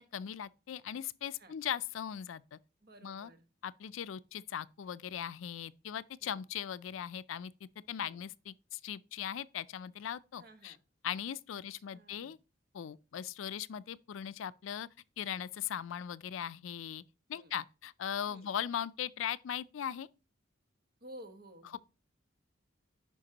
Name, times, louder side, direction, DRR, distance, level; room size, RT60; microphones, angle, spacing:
voice 1, 0.0-2.6 3.0-3.3 3.6-7.5 7.9-10.7 11.0-12.4 12.7-14.9 15.2-17.0 17.3-20.1, left 9 dB, 80° left, 0.4 m, -39 dB
voice 2, 2.8-3.4 6.2-6.4 8.0-8.2 10.4-10.8 11.5-11.6 11.9-12.4 17.3-17.5 18.2-18.5 21.0-21.8, right 1 dB, 50° right, 1.3 m, -54 dB
9.9 x 5.2 x 2.9 m
head